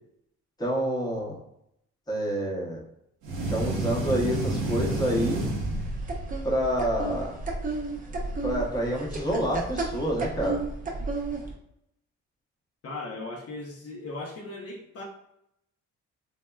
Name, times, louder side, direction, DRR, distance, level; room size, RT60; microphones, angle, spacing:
voice 1, 0.6-1.4 2.1-2.8 3.5-5.4 6.4-7.4 8.4-10.6, equal, 15° left, -3 dB, 0.8 m, -28 dB
sound 1, 3.2-6.4, right 2 dB, 80° right, 0.8 m, -30 dB
sound 2, 5.6-11.5, right 2 dB, 30° right, 0.6 m, -33 dB
voice 2, 12.8-15.0, left 2 dB, 50° left, -1 dB, 0.6 m, -37 dB
3.4 x 2.0 x 2.2 m, 0.77 s
cardioid pair, 90°, 30 cm